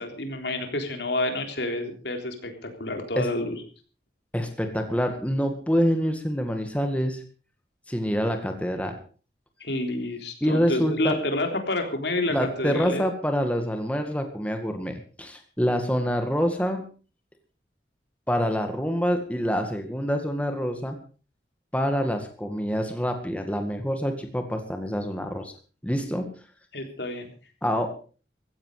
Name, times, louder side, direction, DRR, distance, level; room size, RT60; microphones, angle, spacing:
voice 1, 0.0-3.6 9.6-13.0 26.7-27.2, left 2 dB, 75° left, 5 dB, 3.6 m, -29 dB
voice 2, 4.3-7.2 7.9-9.0 10.4-11.2 12.3-16.8 18.3-21.0 21.7-25.5 25.8-26.3 27.6-27.9, equal, 10° left, 5 dB, 2.0 m, -26 dB
16.0 x 15.5 x 5.0 m, 0.38 s
head